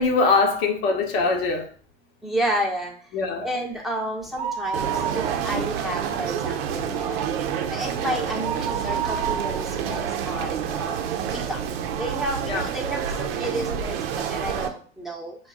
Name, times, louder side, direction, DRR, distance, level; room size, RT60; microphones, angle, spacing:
voice 1, 0.0-1.7 3.1-3.5 12.4-12.7, left 4 dB, 55° left, 4 dB, 0.9 m, -22 dB
voice 2, 2.2-2.9 3.4-7.2 7.7-11.0 11.3-11.6 12.0-15.4, right 1 dB, ahead, -1 dB, 0.9 m, -31 dB
sound 1, 4.2-5.9 6.2-6.3 6.8-11.2 11.7-11.8 12.6-12.7 12.9-13.0, right 7 dB, 20° right, 0.4 m, -31 dB
sound 2, 4.7-14.7, right 8 dB, 55° right, 0.7 m, -28 dB
5.3 x 2.3 x 3.7 m, 0.43 s
hypercardioid pair, 90°, 35 cm